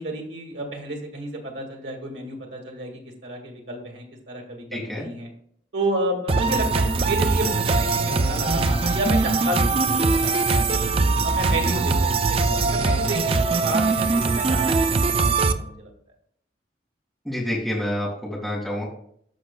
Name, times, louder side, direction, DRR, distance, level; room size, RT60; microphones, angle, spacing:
voice 1, 0.0-5.3 5.7-10.9 11.2-15.9, right 1 dB, 75° right, 2 dB, 2.0 m, -31 dB
voice 2, 4.7-5.1 17.2-18.8, left 1 dB, ahead, -5 dB, 2.0 m, -28 dB
sound 1, 6.3-15.5, right 3 dB, 30° right, 0.4 m, -21 dB
14.0 x 5.1 x 2.3 m, 0.65 s
head